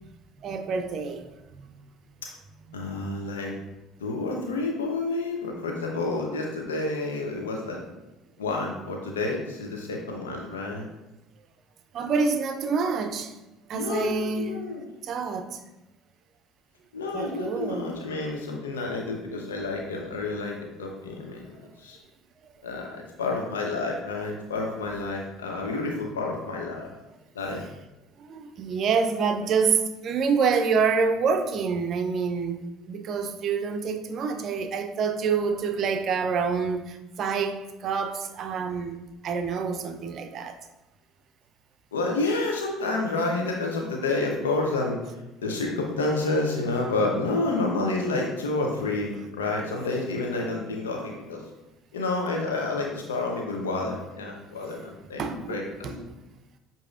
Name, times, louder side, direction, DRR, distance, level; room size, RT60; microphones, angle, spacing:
voice 1, 0.4-1.3 1.5-1.8 11.9-13.3 13.7-14.5 15.0-15.6 17.1-17.9 28.2-39.0 39.2-40.6 55.2-55.6 55.8-56.1, right 5 dB, 50° right, 0.5 m, -27 dB
voice 2, 2.7-3.5 4.0-7.8 8.4-10.9 13.7-14.8 16.9-22.0 22.6-26.9 27.3-27.6 41.9-45.0 45.4-51.4 51.9-55.9, left 2 dB, 85° left, 0.8 m, -29 dB
7.7 x 2.8 x 2.4 m
hypercardioid pair, 65°, 0 cm